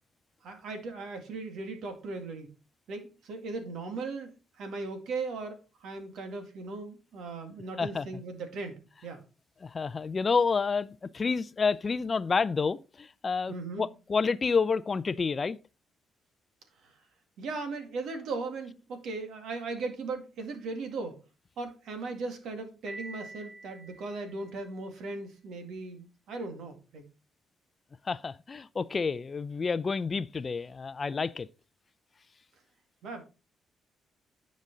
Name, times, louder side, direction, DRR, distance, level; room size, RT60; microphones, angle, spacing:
voice 1, 0.4-2.5 2.9-9.2 13.5-13.9 16.8-17.0 17.4-21.2 21.6-27.0 33.0-33.2, right 3 dB, 75° right, 2.0 m, -38 dB
voice 2, 9.6-15.6 28.0-31.5, left 5 dB, 35° left, 0.4 m, -29 dB
Piano, 22.9-24.8, right 2 dB, 15° right, 0.7 m, -46 dB
9.6 x 5.2 x 3.9 m
cardioid pair, 90°, 0 cm